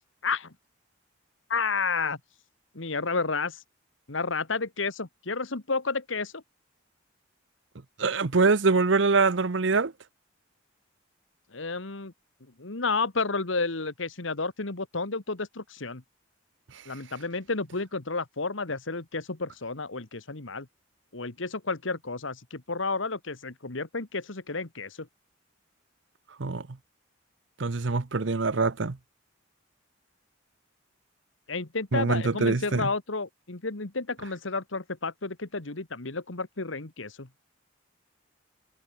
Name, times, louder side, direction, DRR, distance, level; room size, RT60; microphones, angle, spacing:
voice 1, 0.2-0.5 1.5-2.2 2.8-3.6 4.1-6.4 11.5-12.1 12.6-16.0 16.9-20.7 21.1-25.1 31.5-37.3, left 4 dB, 75° left, 1.8 m, -31 dB
voice 2, 8.0-9.9 26.4-26.6 27.6-29.0 31.9-32.9, right 4 dB, 70° right, 0.8 m, -24 dB
head